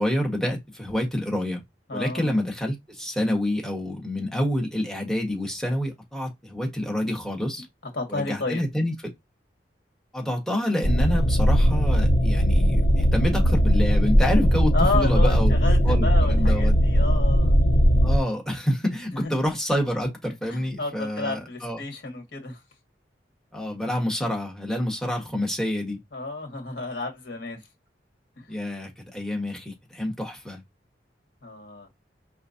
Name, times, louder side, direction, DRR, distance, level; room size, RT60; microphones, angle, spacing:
voice 1, 0.0-1.6 1.9-7.7 8.1-8.9 10.1-15.5 15.8-16.8 18.0-21.8 23.5-26.0 28.5-30.6, left 1 dB, ahead, 1.2 m, -27 dB
voice 2, 1.9-2.3 7.9-8.6 13.3-13.4 14.7-17.5 19.1-19.3 20.5-22.6 26.1-27.6 28.4-28.5 31.4-31.9, left 3 dB, 80° left, 1.8 m, -31 dB
sound 1, 10.8-18.2, equal, 55° left, 0.7 m, -19 dB
5.0 x 3.4 x 2.6 m
head